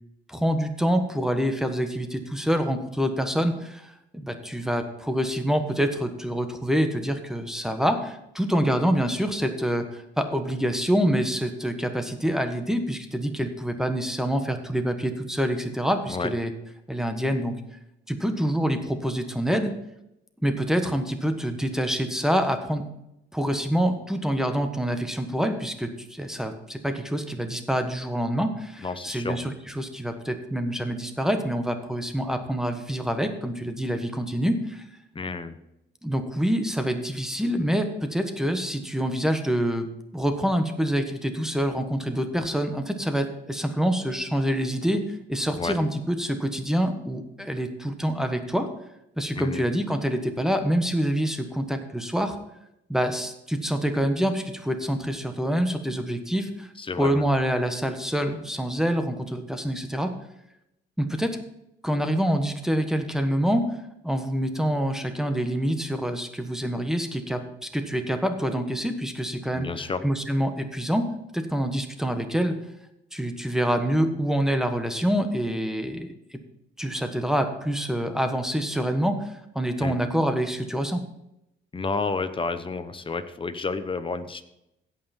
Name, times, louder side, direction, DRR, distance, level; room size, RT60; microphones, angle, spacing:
voice 1, 0.3-16.5 16.9-17.5 18.1-19.7 20.4-22.9 23.3-34.8 36.0-48.7 49.2-52.4 52.9-56.7 57.0-60.1 61.0-61.4 61.8-63.8 64.0-69.7 70.0-72.5 73.1-76.4 76.8-81.0, equal, ahead, 7 dB, 1.2 m, -26 dB
voice 2, 28.8-29.5 35.1-35.6 45.6-45.8 49.4-49.6 56.8-57.2 69.5-70.0 79.8-80.0 81.7-84.4, left 4 dB, 25° left, 11 dB, 1.0 m, -30 dB
16.0 x 5.8 x 4.3 m, 0.84 s
cardioid pair, 90°, 20 cm